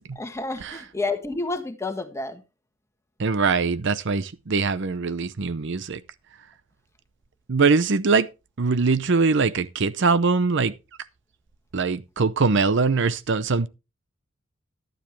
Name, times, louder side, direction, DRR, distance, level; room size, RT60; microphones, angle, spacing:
voice 1, 0.1-2.4, left 3 dB, 15° left, 1.5 m, -30 dB
voice 2, 3.2-6.0 7.5-8.3 8.6-10.7 11.7-13.7, right 4 dB, 60° right, 0.7 m, -22 dB
12.0 x 10.5 x 3.2 m
head